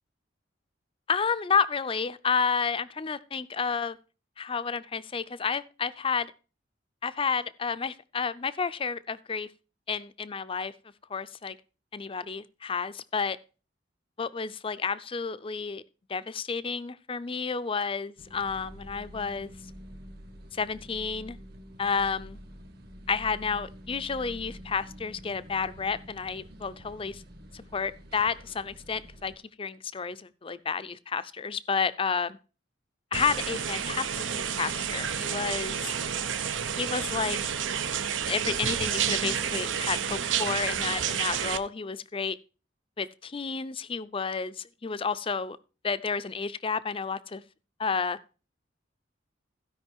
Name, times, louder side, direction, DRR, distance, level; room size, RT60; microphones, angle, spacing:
voice 1, 1.1-4.0 4.4-6.3 7.0-9.5 9.9-10.7 11.1-11.6 11.9-13.4 14.2-15.8 16.1-19.5 20.5-21.4 21.8-22.4 23.1-27.2 27.5-29.3 29.6-32.4 33.1-35.9 36.7-37.4 38.2-42.4 43.0-45.6 45.8-47.4 47.8-48.2, left 5 dB, 30° left, 0.5 m, -31 dB
sound 1, 18.2-29.4, equal, 55° right, 1.5 m, -47 dB
sound 2, 33.1-41.6, right 8 dB, 85° right, 0.8 m, -30 dB
15.5 x 5.3 x 4.5 m
head